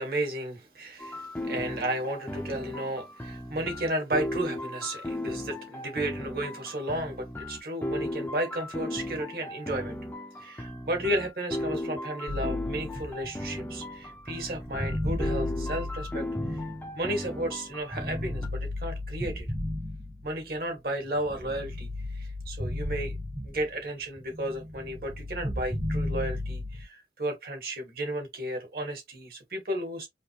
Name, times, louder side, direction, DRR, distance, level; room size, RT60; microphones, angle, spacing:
voice 1, 0.0-10.0 10.4-16.6 16.9-19.5 20.2-21.9 22.1-23.2 23.4-30.1, right 1 dB, 55° right, 1.5 m, -33 dB
sound 1, 1.0-18.5, left 1 dB, 10° left, 0.6 m, -36 dB
sound 2, 12.3-17.4 17.9-20.6 21.0-23.9 24.2-26.8, left 1 dB, 80° right, 2.6 m, -34 dB
5.0 x 2.1 x 3.0 m
head